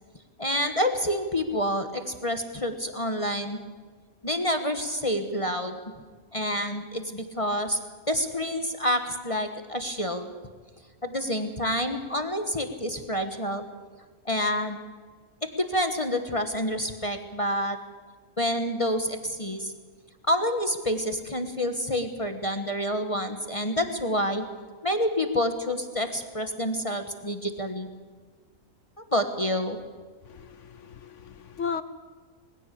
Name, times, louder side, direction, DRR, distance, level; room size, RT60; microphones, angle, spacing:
voice 1, 0.4-3.6 4.2-5.8 6.3-7.8 8.1-10.3 11.0-13.6 14.2-14.8 15.6-17.8 18.4-19.7 20.3-24.4 24.8-27.9 29.0-29.8, equal, 25° left, 7 dB, 1.3 m, -28 dB
voice 2, 30.3-31.8, left 6 dB, 60° left, 13 dB, 1.1 m, -35 dB
21.0 x 15.5 x 8.5 m, 1.5 s
omnidirectional pair, 1.5 m